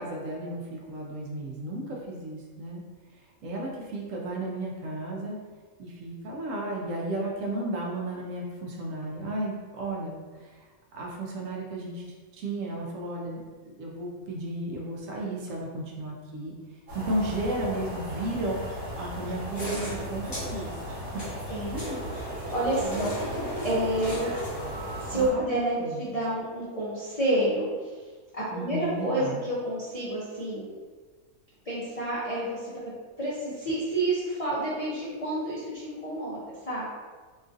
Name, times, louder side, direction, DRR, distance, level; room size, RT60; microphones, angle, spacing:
voice 1, 0.0-2.8 3.4-5.4 5.8-10.5 10.9-12.0 12.3-16.5 16.9-18.6 19.0-20.7 21.1-21.3 21.7-22.0 22.8-23.1 25.1-25.4 25.8-26.0 28.5-29.4, right 1 dB, 70° right, -2 dB, 0.9 m, -34 dB
sound 1, 16.9-25.3, equal, 55° right, 1.4 m, -37 dB
sound 2, 19.6-25.0, equal, 20° left, 0.8 m, -37 dB
voice 2, 21.5-23.1 23.6-24.3 25.0-28.0 28.3-30.7 31.6-32.9 33.2-36.9, right 1 dB, 55° left, -9 dB, 0.4 m, -29 dB
3.0 x 2.5 x 2.5 m, 1.4 s
omnidirectional pair, 1.5 m